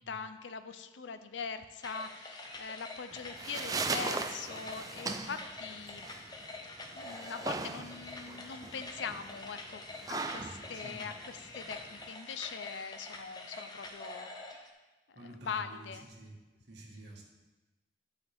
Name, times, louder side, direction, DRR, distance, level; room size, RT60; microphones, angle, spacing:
voice 1, 0.1-6.1 6.9-14.3 15.1-16.0, left 6 dB, 80° left, 10 dB, 0.5 m, -42 dB
sound 1, 1.8-14.7, left 2 dB, 20° left, 0.7 m, -46 dB
sound 2, 3.1-12.1, right 4 dB, 20° right, 0.3 m, -39 dB
voice 2, 10.7-11.1 15.1-16.4 16.7-17.2, right 1 dB, 65° right, -2 dB, 1.6 m, -49 dB
11.0 x 5.6 x 3.5 m, 1.2 s
head